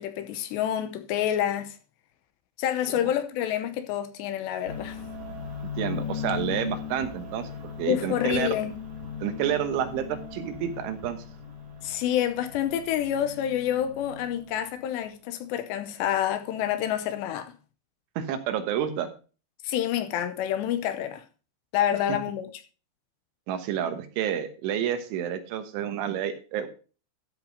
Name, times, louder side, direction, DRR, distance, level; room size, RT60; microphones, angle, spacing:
voice 1, 0.0-1.8 2.6-5.0 7.9-8.7 11.8-17.5 19.6-21.2 21.7-22.5, left 11 dB, 75° left, 2.8 m, -28 dB
sound 1, 4.6-14.9, left 7 dB, 45° right, 5.0 m, -38 dB
voice 2, 5.8-7.5 7.8-8.6 9.2-11.3 18.2-19.1 22.1-22.2 23.5-26.7, right 9 dB, 85° right, 3.7 m, -29 dB
13.0 x 6.1 x 5.1 m
omnidirectional pair, 5.3 m